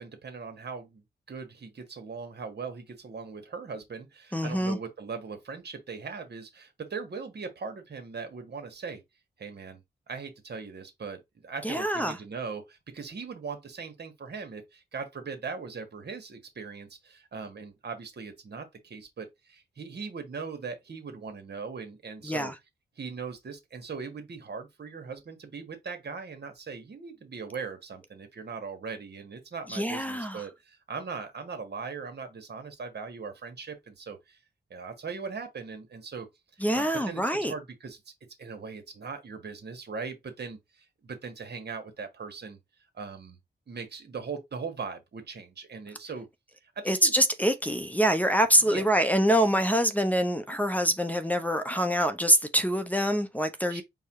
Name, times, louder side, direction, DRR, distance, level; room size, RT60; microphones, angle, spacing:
voice 1, 0.0-9.0 9.4-9.8 10.1-22.5 23.0-34.4 34.7-36.3 36.7-38.0 38.4-42.6 42.9-43.4 43.7-46.3 46.6-47.1 48.6-49.0 53.7-53.8, right 5 dB, 60° right, 1.6 m, -39 dB
voice 2, 4.3-4.8 11.6-12.2 22.2-22.5 29.7-30.4 36.6-37.5 46.9-53.8, equal, 10° left, 0.7 m, -25 dB
4.7 x 2.3 x 4.6 m
cardioid pair, 70°, 19 cm